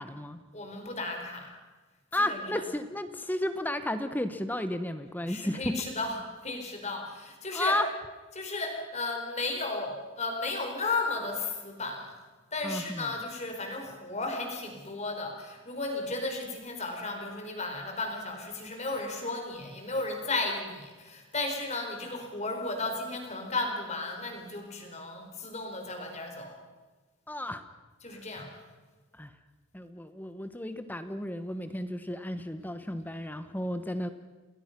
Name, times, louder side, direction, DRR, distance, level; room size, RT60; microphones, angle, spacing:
voice 1, 0.0-0.4 2.1-5.7 7.5-7.8 12.6-13.1 27.3-27.6 28.1-28.2 29.2-29.3 29.7-34.1, left 1 dB, 10° left, 10 dB, 1.0 m, -33 dB
voice 2, 0.5-1.5 2.1-2.7 5.2-7.8 8.3-12.2 12.5-26.6 28.0-28.5, left 3 dB, 30° left, 3 dB, 4.5 m, -34 dB
29.0 x 20.5 x 6.0 m, 1.3 s
head